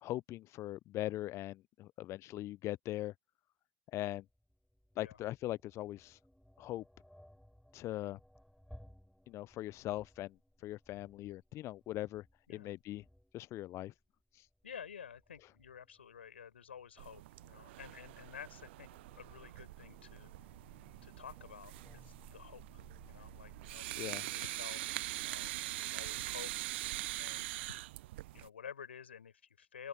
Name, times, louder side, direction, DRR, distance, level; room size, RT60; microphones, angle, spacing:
voice 1, 0.0-3.1 3.9-4.2 5.0-6.2 6.6-6.8 7.7-8.2 9.3-13.0 13.3-13.9 14.3-14.5 24.0-24.2, left 15 dB, 50° left, 0.3 m, -41 dB
sound 1, 4.2-23.8, equal, ahead, 6.0 m, -62 dB
voice 2, 14.6-20.3 21.0-26.5 27.2-27.9 28.3-29.9, left 7 dB, 90° left, 5.5 m, -51 dB
sound 2, 17.0-28.5, right 18 dB, 75° right, 0.5 m, -43 dB
open air
hypercardioid pair, 65°, 6 cm